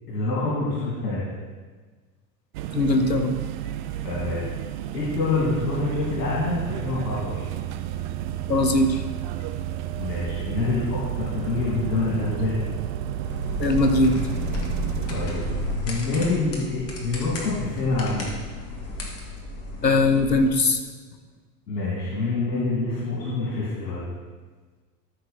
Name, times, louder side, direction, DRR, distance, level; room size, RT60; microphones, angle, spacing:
voice 1, 0.1-1.2 4.0-4.5 4.9-7.4 10.0-12.7 15.1-15.5 15.8-18.3 21.7-24.1, left 3 dB, 65° left, -6 dB, 2.7 m, -26 dB
sound 1, 2.5-15.8, right 11 dB, 35° right, 0.4 m, -31 dB
voice 2, 2.7-3.3 8.5-9.0 13.6-14.1 19.8-20.8, left 2 dB, 85° left, 6 dB, 1.1 m, -20 dB
sound 2, 13.2-20.5, left 2 dB, 30° left, 2.1 m, -33 dB
13.5 x 5.8 x 4.3 m, 1.4 s
figure-of-eight pair, 85°, 48 cm